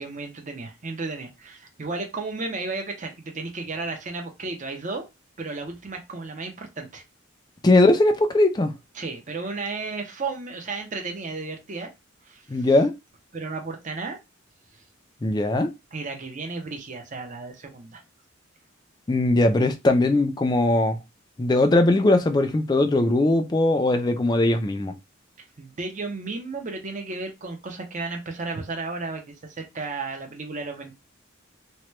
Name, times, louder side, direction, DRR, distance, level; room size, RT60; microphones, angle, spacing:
voice 1, 0.0-5.1 5.4-7.0 8.9-11.9 12.3-12.7 13.3-14.2 14.7-14.8 15.9-18.0 25.6-30.9, right 3 dB, 40° right, 0.6 m, -33 dB
voice 2, 7.6-8.7 12.5-12.9 15.2-15.7 19.1-21.0 21.4-24.9, left 2 dB, 20° left, 0.3 m, -20 dB
2.9 x 2.2 x 3.1 m
head